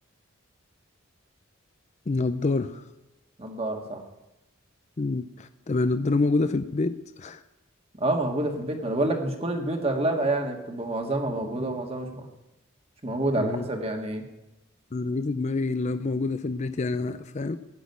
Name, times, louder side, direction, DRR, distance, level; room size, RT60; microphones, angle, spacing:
voice 1, 2.1-2.8 5.0-7.4 13.4-13.7 14.9-17.6, left 3 dB, 35° left, 11 dB, 0.5 m, -27 dB
voice 2, 3.4-4.0 8.0-12.2 13.0-14.2, right 2 dB, 30° right, 4 dB, 1.8 m, -28 dB
16.0 x 6.4 x 9.5 m, 0.96 s
head